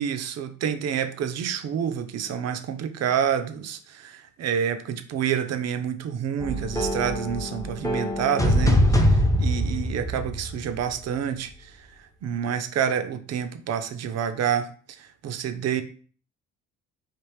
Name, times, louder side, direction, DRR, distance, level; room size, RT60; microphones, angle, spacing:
voice 1, 0.0-11.9 12.2-15.8, right 8 dB, 55° right, 0.5 m, -28 dB
sound 1, 6.4-11.0, equal, 10° left, 0.5 m, -23 dB
3.5 x 2.4 x 3.1 m
cardioid pair, 90°, 30 cm